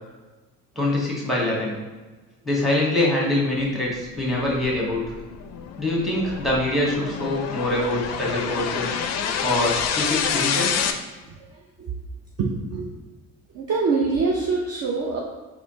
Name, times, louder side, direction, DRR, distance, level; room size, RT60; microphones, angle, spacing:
voice 1, 0.7-1.8 2.4-5.0 5.8-8.9 9.4-10.7, left 1 dB, ahead, -4 dB, 1.5 m, -24 dB
sound 1, 3.9-10.9, left 7 dB, 40° left, 0.4 m, -28 dB
voice 2, 12.4-12.9 13.5-15.2, right 4 dB, 40° right, -2 dB, 0.6 m, -24 dB
4.2 x 2.8 x 2.8 m, 1.2 s
hypercardioid pair, 60°, 40 cm